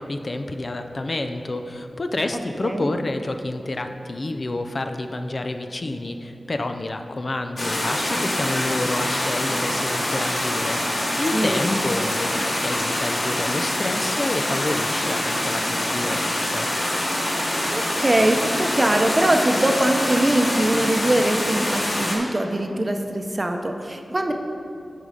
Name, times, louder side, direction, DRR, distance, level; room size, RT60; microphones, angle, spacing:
voice 1, 0.0-16.7, left 2 dB, 45° left, 6 dB, 0.5 m, -29 dB
sound 1, 7.6-22.2, left 1 dB, 60° left, 2.1 m, -25 dB
voice 2, 11.3-11.6 17.7-24.3, right 1 dB, 30° right, 4 dB, 0.8 m, -22 dB
11.0 x 5.5 x 5.1 m, 2.7 s
wide cardioid pair, 75°, 0 cm